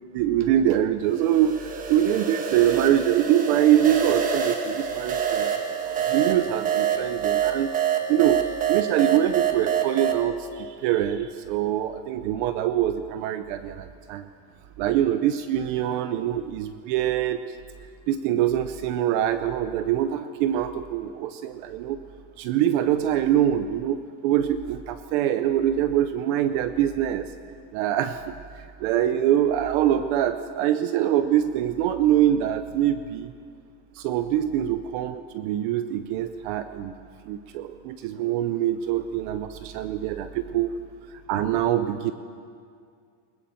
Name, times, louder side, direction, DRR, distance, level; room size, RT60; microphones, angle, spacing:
voice 1, 0.1-5.5 5.9-7.7 8.1-14.2 14.8-17.4 18.1-22.0 22.4-27.3 27.7-33.3 34.0-36.9 37.3-40.7 41.3-42.1, right 11 dB, 35° right, 11 dB, 0.6 m, -24 dB
sound 1, 1.1-10.2, right 8 dB, 20° right, 1.3 m, -27 dB
21.5 x 20.0 x 7.0 m, 2.3 s
supercardioid pair, 165°, 46 cm